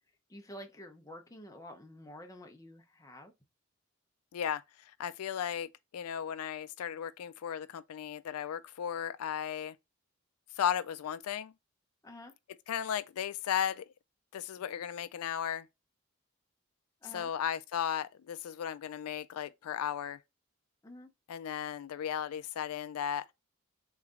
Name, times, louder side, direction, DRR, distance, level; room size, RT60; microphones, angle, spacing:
voice 1, 0.3-3.3 12.0-12.3 17.0-17.3 20.8-21.1, left 1 dB, 15° left, 0.7 m, -49 dB
voice 2, 4.3-9.8 10.6-11.5 12.7-13.9 14.3-15.7 17.1-20.2 21.3-23.2, left 9 dB, 90° left, 0.4 m, -35 dB
3.9 x 3.2 x 3.6 m
head